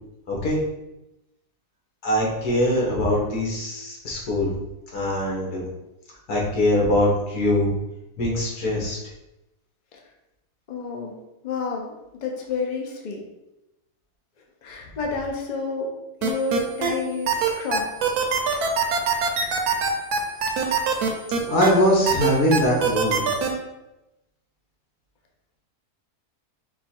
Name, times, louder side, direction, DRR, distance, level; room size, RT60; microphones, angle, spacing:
voice 1, 0.3-0.6 2.0-4.5 4.9-5.7 6.3-7.7 8.2-9.0 18.5-18.7 21.5-23.3, left 1 dB, 75° left, -3 dB, 1.8 m, -22 dB
voice 2, 10.7-11.2 11.4-11.9 12.2-13.2 14.6-15.9 16.2-17.9, left 4 dB, 50° left, 0 dB, 0.5 m, -29 dB
sound 1, 16.2-16.9 17.3-21.7 22.1-23.5, right 6 dB, 75° right, 1.2 m, -22 dB
5.3 x 2.3 x 4.3 m, 0.95 s
omnidirectional pair, 1.7 m